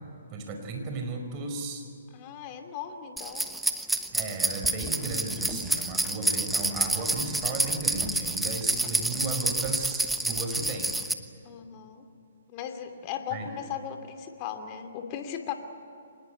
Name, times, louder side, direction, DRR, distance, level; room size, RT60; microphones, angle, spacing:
voice 1, 0.3-1.9 4.1-11.0 13.3-13.5, right 3 dB, 30° right, 5 dB, 5.0 m, -35 dB
voice 2, 2.1-3.5 11.4-12.0 12.5-15.5, left 9 dB, 35° left, 6 dB, 2.7 m, -37 dB
sound 1, 3.2-11.1, right 2 dB, 5° right, 1.1 m, -28 dB
25.0 x 20.0 x 9.2 m, 2.5 s
hypercardioid pair, 135°, 0 cm